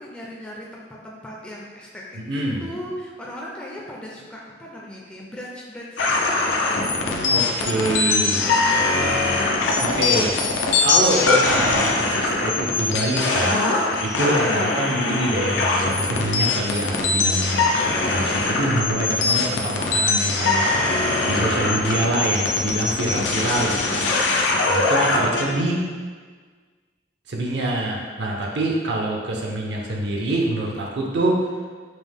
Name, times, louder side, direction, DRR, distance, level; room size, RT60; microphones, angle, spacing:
voice 1, 0.0-6.2 6.4-8.8, equal, 5° left, -4 dB, 0.3 m, -38 dB
voice 2, 2.1-2.6 7.3-8.4 9.8-10.3 10.8-13.6 14.0-20.7 21.2-24.1 24.7-25.8 27.3-31.4, right 1 dB, 70° right, -1 dB, 0.5 m, -25 dB
sound 1, 6.0-25.4, left 3 dB, 90° left, 0.5 m, -22 dB
5.2 x 2.0 x 3.5 m, 1.6 s
head